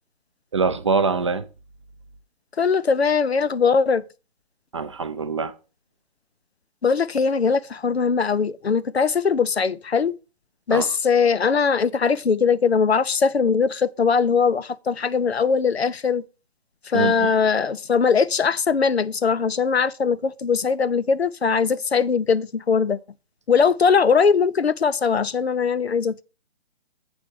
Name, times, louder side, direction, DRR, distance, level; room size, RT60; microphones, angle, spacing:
voice 1, 0.5-1.5 4.7-5.5 10.7-10.9 16.9-17.3, right 4 dB, 30° right, 0.4 m, -24 dB
voice 2, 2.6-4.0 6.8-10.1 10.7-16.2 16.9-23.0 23.5-26.2, left 5 dB, 85° left, 0.6 m, -20 dB
7.8 x 4.1 x 6.1 m
figure-of-eight pair, 140°, 31 cm